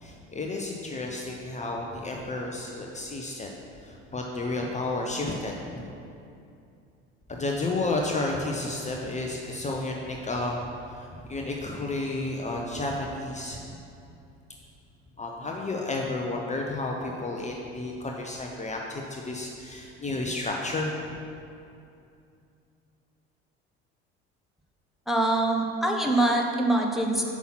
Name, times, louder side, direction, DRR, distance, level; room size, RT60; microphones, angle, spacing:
voice 1, 0.0-3.5 3.8-5.9 7.3-10.6 10.9-13.8 15.2-21.1, left 2 dB, 20° left, 0 dB, 0.8 m, -32 dB
voice 2, 25.1-27.2, right 1 dB, ahead, 0 dB, 1.0 m, -24 dB
5.9 x 5.5 x 5.9 m, 2.6 s
hypercardioid pair, 70°, 31 cm